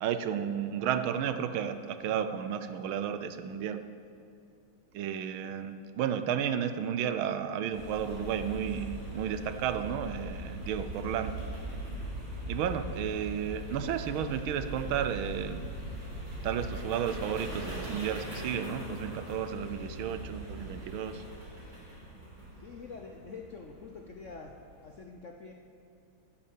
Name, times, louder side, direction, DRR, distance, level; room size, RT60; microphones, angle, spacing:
voice 1, 0.0-3.8 4.9-11.3 12.5-15.6 16.4-21.2, right 8 dB, 80° right, 10 dB, 1.5 m, -33 dB
sound 1, 7.7-24.9, equal, 20° right, 2.9 m, -41 dB
sound 2, 11.4-13.2 13.7-17.8 18.4-21.6, equal, 30° left, 1.9 m, -57 dB
voice 2, 22.6-24.5 24.8-25.5, left 4 dB, 65° left, 2 dB, 0.7 m, -45 dB
10.0 x 9.6 x 7.3 m, 2.7 s
omnidirectional pair, 2.3 m